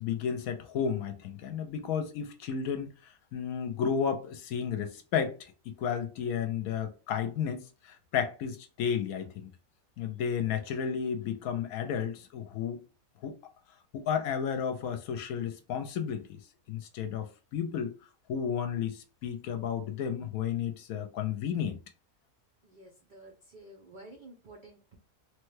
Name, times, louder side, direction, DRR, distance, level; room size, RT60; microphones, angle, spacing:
voice 1, 0.0-9.5 10.0-12.8 13.2-13.3 13.9-16.4 16.7-17.9 18.3-21.8, left 7 dB, 70° left, 1.0 m, -32 dB
voice 2, 22.6-25.0, right 2 dB, 70° right, 0.4 m, -51 dB
3.3 x 2.2 x 3.1 m
omnidirectional pair, 1.7 m